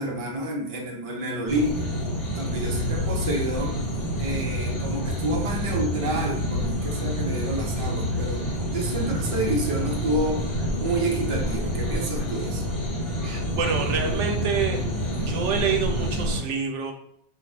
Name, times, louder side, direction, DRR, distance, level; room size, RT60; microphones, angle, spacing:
voice 1, 0.0-1.9 2.4-3.8 4.2-12.6, right 1 dB, 35° right, -1 dB, 0.6 m, -29 dB
sound 1, 1.5-16.4, equal, 60° left, 1.2 m, -28 dB
voice 2, 13.2-14.8 15.3-16.9, right 5 dB, 80° right, 3 dB, 0.9 m, -27 dB
2.5 x 2.4 x 3.2 m, 0.70 s
omnidirectional pair, 1.2 m